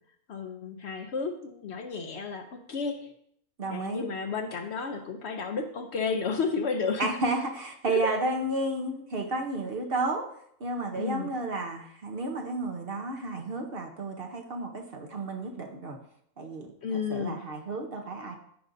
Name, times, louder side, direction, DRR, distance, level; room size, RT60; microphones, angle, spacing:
voice 1, 0.3-3.1 3.7-7.2 7.9-8.1 11.0-11.3 16.8-17.4, left 5 dB, 60° left, 6 dB, 0.8 m, -32 dB
voice 2, 3.6-4.0 7.0-10.3 10.6-16.0 16.4-18.4, right 2 dB, 45° right, 2 dB, 1.0 m, -32 dB
14.0 x 5.3 x 2.6 m, 0.69 s
omnidirectional pair, 1.5 m